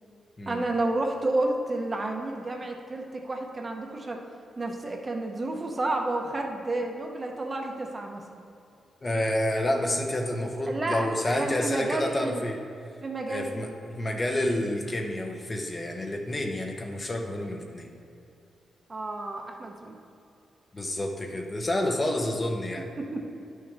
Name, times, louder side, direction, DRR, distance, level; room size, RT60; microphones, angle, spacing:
voice 1, 0.5-4.2 4.6-8.2 10.7-11.1 11.4-12.4 13.0-13.7 18.9-20.0 23.0-23.2, right 2 dB, 30° right, 2 dB, 0.8 m, -30 dB
voice 2, 9.0-12.6 13.3-17.9 20.7-22.9, left 1 dB, 25° left, 3 dB, 0.8 m, -29 dB
11.0 x 6.4 x 3.4 m, 2.6 s
cardioid pair, 115°, 0 cm